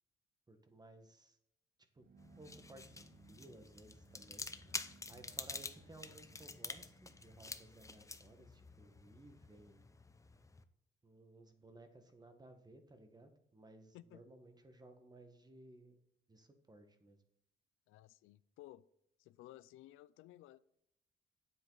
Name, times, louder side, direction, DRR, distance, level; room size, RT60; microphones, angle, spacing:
voice 1, 0.5-1.4 1.9-2.1 2.4-4.5 5.1-9.9 11.0-16.0 16.3-17.2, right 2 dB, 20° right, 7 dB, 1.5 m, -59 dB
sound 1, 2.0-9.7, right 6 dB, 45° right, 1.0 m, -66 dB
sound 2, 2.2-10.6, left 3 dB, 15° left, 0.7 m, -49 dB
voice 2, 17.9-18.8 19.2-20.6, left 15 dB, 85° left, 18 dB, 0.4 m, -57 dB
9.0 x 7.7 x 4.0 m, 0.77 s
cardioid pair, 90°, 20 cm